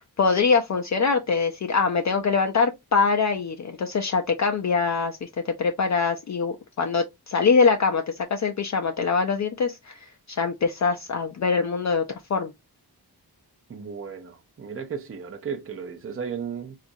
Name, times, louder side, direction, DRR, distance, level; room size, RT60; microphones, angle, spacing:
voice 1, 0.0-12.0 12.3-12.5, left 5 dB, 45° left, 0.4 m, -23 dB
voice 2, 13.7-16.8, right 6 dB, 35° right, 0.5 m, -34 dB
3.9 x 2.4 x 2.6 m
wide cardioid pair, 110°, 40 cm